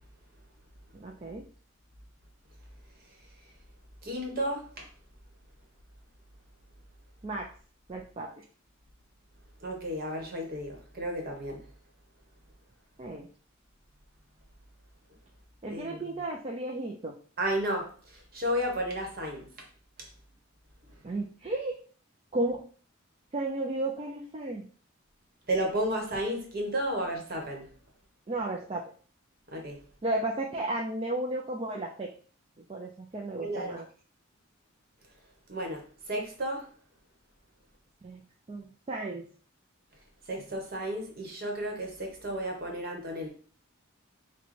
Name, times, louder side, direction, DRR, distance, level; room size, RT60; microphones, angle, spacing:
voice 1, 0.9-1.5 7.2-7.5 7.9-8.4 13.0-13.3 15.6-17.2 21.0-21.8 22.3-22.6 23.3-24.6 28.3-28.8 30.0-32.1 32.7-33.9 38.0-38.2 38.5-39.3, right 2 dB, 30° right, 0 dB, 0.4 m, -33 dB
voice 2, 4.0-4.8 9.6-11.6 15.7-16.0 17.4-19.5 25.5-27.7 29.5-29.8 33.4-33.8 35.5-36.7 40.3-43.3, equal, 45° right, 1 dB, 1.1 m, -33 dB
6.1 x 2.2 x 3.2 m, 0.42 s
head